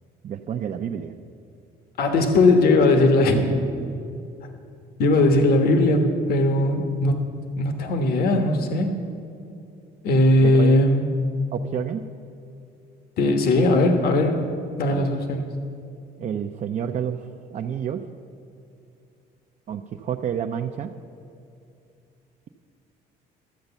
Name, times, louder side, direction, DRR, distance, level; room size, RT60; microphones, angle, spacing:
voice 1, 0.2-1.2 10.4-10.8 11.5-12.1 14.9-15.1 16.2-18.0 19.7-20.9, right 8 dB, 45° right, 4 dB, 0.5 m, -29 dB
voice 2, 2.0-3.5 5.0-7.2 7.6-8.9 10.0-11.1 13.2-14.5 14.8-15.5, left 2 dB, 65° left, 5 dB, 1.3 m, -19 dB
13.0 x 7.9 x 6.9 m, 2.6 s
cardioid pair, 110°, 17 cm